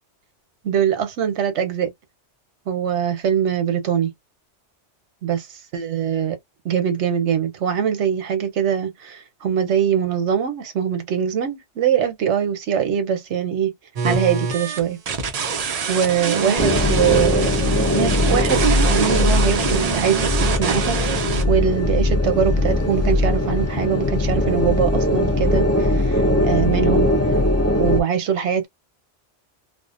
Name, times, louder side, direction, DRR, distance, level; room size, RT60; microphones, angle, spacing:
voice 1, 0.6-1.9 2.7-4.1 5.2-5.5 5.7-6.4 6.6-13.7 14.0-15.0 15.4-15.5 15.9-17.5 17.9-27.1 27.8-28.7, right 8 dB, 75° right, 1.0 m, -22 dB
sound 1, 14.0-21.4, right 5 dB, 55° right, 0.4 m, -24 dB
sound 2, 16.6-28.0, left 1 dB, 20° left, 0.4 m, -20 dB
2.5 x 2.0 x 2.4 m
omnidirectional pair, 1.2 m